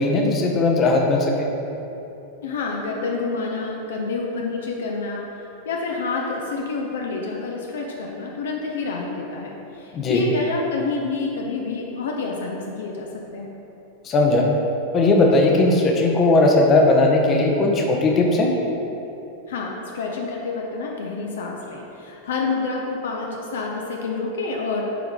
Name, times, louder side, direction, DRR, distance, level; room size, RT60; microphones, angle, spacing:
voice 1, 0.0-1.5 9.9-10.2 14.0-14.5 14.9-18.5, left 2 dB, 30° left, 0 dB, 0.8 m, -18 dB
voice 2, 2.4-5.3 5.7-13.5 19.5-24.9, left 4 dB, 60° left, 0 dB, 0.6 m, -28 dB
7.0 x 4.6 x 3.7 m, 2.9 s
figure-of-eight pair, 90°, 0 cm